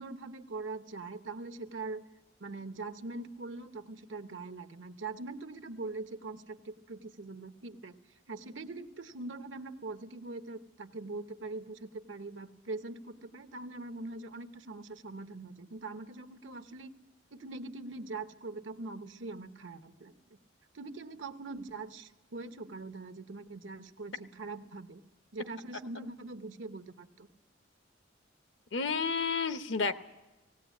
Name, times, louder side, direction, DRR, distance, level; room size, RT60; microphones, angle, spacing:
voice 1, 0.0-2.0 2.4-8.0 8.3-16.9 17.3-20.1 20.7-25.0 25.3-27.3, right 3 dB, 90° right, 8 dB, 1.0 m, -42 dB
voice 2, 28.7-29.9, left 5 dB, 75° left, 10 dB, 0.9 m, -30 dB
18.0 x 17.5 x 8.4 m, 1.1 s
head